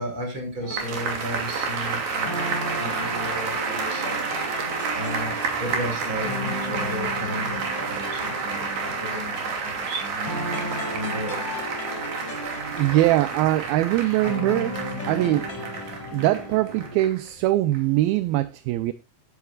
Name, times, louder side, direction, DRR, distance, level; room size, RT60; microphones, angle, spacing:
voice 1, 0.0-2.5 2.8-4.3 4.9-11.4, equal, 30° right, 5.9 m, -34 dB
sound 1, 0.6-17.0, left 1 dB, 45° left, 5.3 m, -35 dB
sound 2, 0.8-17.3 17.7-17.8, right 5 dB, 60° right, 4.3 m, -30 dB
voice 2, 12.7-14.8 15.1-15.5 16.1-18.9, right 15 dB, 80° right, 2.3 m, -22 dB
16.0 x 10.5 x 2.4 m
omnidirectional pair, 4.7 m